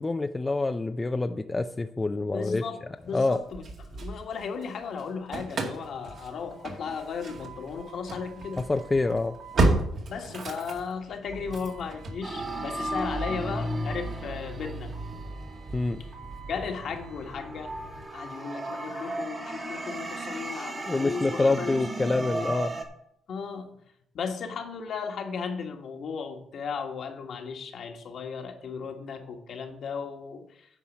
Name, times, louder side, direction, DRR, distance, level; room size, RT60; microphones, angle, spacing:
voice 1, 0.0-2.6 3.1-3.4 8.7-9.4 15.7-16.0 20.9-22.7, left 3 dB, 20° left, 7 dB, 0.5 m, -26 dB
voice 2, 2.3-8.6 10.1-14.9 16.5-17.7 18.1-22.1 23.3-23.7 24.1-30.7, left 5 dB, 65° left, 4 dB, 1.5 m, -36 dB
Engine starting / Slam, 3.3-4.7 5.0-18.0, right 2 dB, 60° right, 2.1 m, -33 dB
sound 1, 12.2-16.2 16.8-22.8, right 2 dB, 30° right, 1.6 m, -36 dB
9.5 x 4.9 x 7.2 m, 0.73 s
cardioid pair, 90°, 0 cm